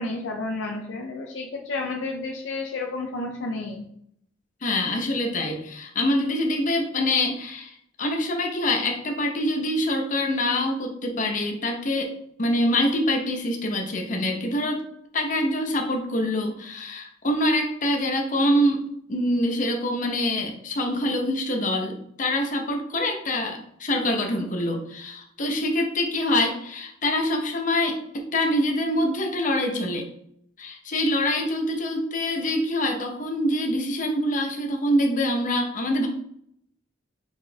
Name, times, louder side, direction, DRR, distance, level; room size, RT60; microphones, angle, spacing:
voice 1, 0.0-3.8, left 3 dB, 80° left, 2 dB, 0.5 m, -31 dB
voice 2, 4.6-12.1 12.4-14.8 15.1-18.8 19.1-30.0 30.6-36.1, left 1 dB, 45° left, 3 dB, 0.7 m, -25 dB
4.3 x 4.0 x 2.7 m, 0.70 s
head